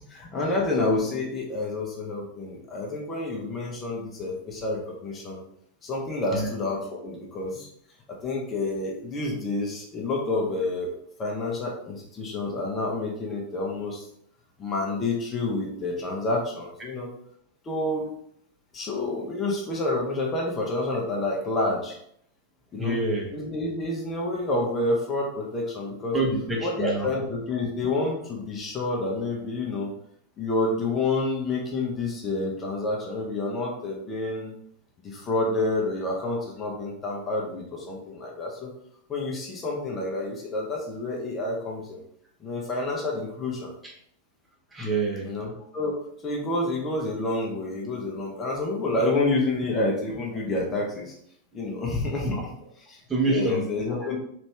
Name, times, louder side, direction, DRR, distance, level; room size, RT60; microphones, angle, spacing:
voice 1, 0.1-5.4 5.8-7.7 8.1-10.9 11.2-14.1 14.6-17.1 17.6-18.1 18.7-22.0 22.7-23.0 23.3-26.2 26.6-29.9 30.4-34.5 35.0-38.7 39.1-42.0 42.4-43.7 45.2-46.0 46.2-51.1 51.5-52.3 52.9-54.2, left 2 dB, 25° left, -2 dB, 0.8 m, -28 dB
voice 2, 22.8-23.3 26.1-27.1 43.8-43.9 44.7-45.3 52.1-52.4 53.1-54.1, right 2 dB, 15° right, -2 dB, 0.9 m, -27 dB
3.4 x 2.7 x 3.2 m, 0.69 s
figure-of-eight pair, 90°, 0 cm